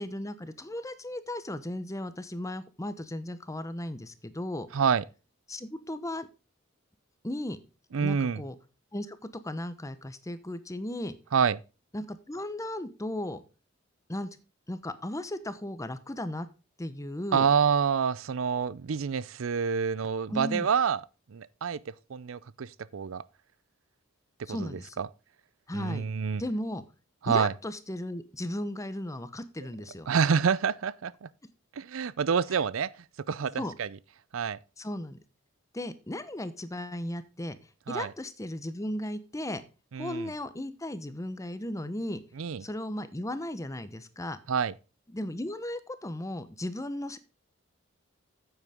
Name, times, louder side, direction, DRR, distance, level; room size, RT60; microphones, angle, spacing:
voice 1, 0.0-4.7 5.5-6.3 7.2-7.6 8.0-8.5 8.9-11.1 11.9-13.4 14.1-14.3 14.7-16.5 16.8-17.5 20.3-20.7 24.5-25.0 25.7-26.0 26.4-26.8 27.3-30.1 32.5-32.6 33.6-33.7 34.8-35.2 35.7-37.6 37.9-39.6 40.0-42.2 42.6-44.4 45.1-47.2, left 1 dB, 15° left, 0.9 m, -36 dB
voice 2, 4.7-5.0 7.9-8.4 11.3-11.6 17.3-21.0 21.3-21.8 22.1-23.2 24.5-25.1 25.7-26.4 27.2-27.5 30.1-31.3 31.8-32.9 33.3-34.0 34.3-34.6 37.9-38.1 39.9-40.3 42.4-42.7 44.5-44.7, right 6 dB, 85° right, 0.5 m, -27 dB
9.5 x 8.0 x 3.5 m
head